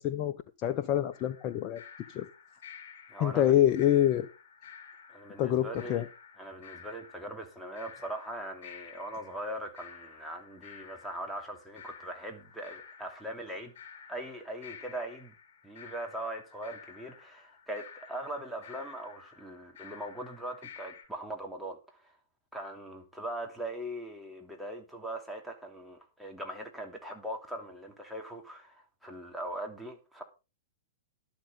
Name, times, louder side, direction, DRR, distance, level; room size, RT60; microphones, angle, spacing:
voice 1, 0.0-1.8 2.1-2.3 3.2-4.3 5.4-6.1, left 11 dB, 40° left, 0.9 m, -26 dB
sound 1, 1.1-21.1, left 7 dB, 65° left, 7.1 m, -52 dB
voice 2, 3.1-3.5 5.1-6.0 6.4-13.7 14.1-15.3 15.6-22.1 22.5-30.2, right 1 dB, ahead, 3.0 m, -40 dB
12.0 x 11.5 x 3.9 m
hypercardioid pair, 115°, 0 cm